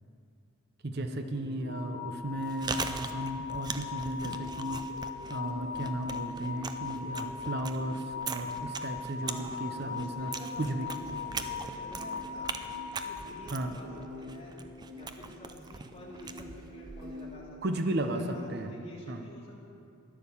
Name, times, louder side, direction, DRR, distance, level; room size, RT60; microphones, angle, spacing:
voice 1, 0.8-4.9 5.3-10.3 10.6-10.9 13.5-13.7 17.6-18.7 19.1-19.2, right 1 dB, 45° right, 6 dB, 0.7 m, -35 dB
sound 1, 1.3-17.3, left 1 dB, 75° right, 2.4 m, -48 dB
sound 2, 1.6-13.9, left 6 dB, 45° left, 3.7 m, -40 dB
Chewing mastication, 2.3-17.3, right 5 dB, 20° right, 0.3 m, -41 dB
voice 2, 9.8-10.6 11.0-12.5 12.8-13.9 14.2-14.5 14.9-19.5, left 1 dB, 30° left, -5 dB, 2.4 m, -49 dB
11.5 x 10.0 x 7.1 m, 2.5 s
head